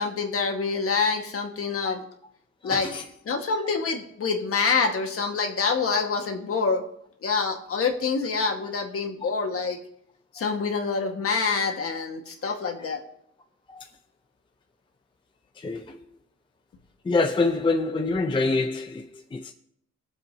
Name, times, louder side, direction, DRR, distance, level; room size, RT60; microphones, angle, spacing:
voice 1, 0.0-2.0 2.6-2.9 3.2-6.8 7.2-9.8 10.3-13.0, left 5 dB, 50° left, 1.5 m, -26 dB
voice 2, 2.6-3.0 9.2-9.3 12.8-12.9 13.7-13.9 15.6-16.0 17.0-19.5, left 3 dB, 15° left, 0.5 m, -26 dB
20.5 x 7.3 x 2.7 m
cardioid pair, 145°, 30 cm